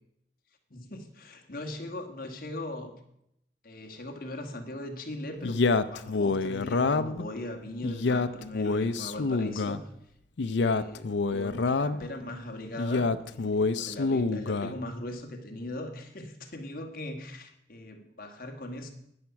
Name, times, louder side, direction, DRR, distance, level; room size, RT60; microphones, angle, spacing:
voice 1, 0.7-3.0 3.6-9.9 10.4-18.9, left 1 dB, 50° left, 4 dB, 1.5 m, -40 dB
Male speech man speaking, 5.4-7.3 7.8-9.8 10.4-12.1 12.8-14.8, left 3 dB, 75° left, 0.5 m, -27 dB
10.5 x 9.5 x 5.8 m, 0.77 s
head